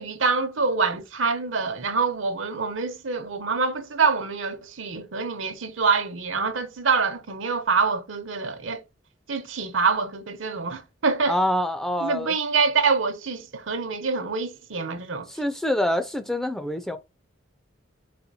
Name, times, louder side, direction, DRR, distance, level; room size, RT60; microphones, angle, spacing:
voice 1, 0.0-8.8 9.3-11.3 12.0-15.3, right 4 dB, 80° right, 0.8 m, -25 dB
voice 2, 11.3-12.3 15.3-17.0, left 1 dB, ahead, 0.3 m, -25 dB
4.2 x 4.1 x 2.7 m
head